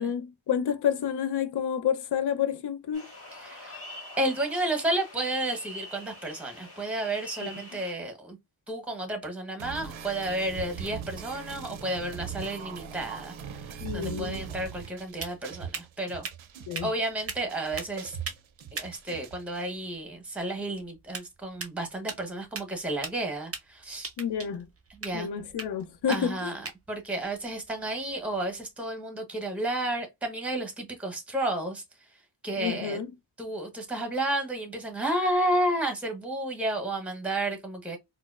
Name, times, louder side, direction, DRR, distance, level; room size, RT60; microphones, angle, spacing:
voice 1, 0.0-3.1 7.4-7.5 13.8-14.4 16.7-16.9 24.2-24.7 25.1-26.5 32.6-33.1, left 8 dB, 60° left, 0.6 m, -29 dB
sound 1, 2.9-7.9, left 1 dB, 30° left, 1.8 m, -45 dB
voice 2, 3.4-3.8 4.2-8.4 8.7-16.3 16.8-18.2 18.7-24.1 25.0-25.3 26.1-31.8 32.4-33.0 33.4-38.0, right 1 dB, 5° right, 0.9 m, -31 dB
sound 2, 9.6-19.6, right 7 dB, 80° right, 0.6 m, -41 dB
sound 3, 14.8-28.6, right 5 dB, 30° right, 0.6 m, -43 dB
4.2 x 2.0 x 2.3 m
cardioid pair, 85°, 47 cm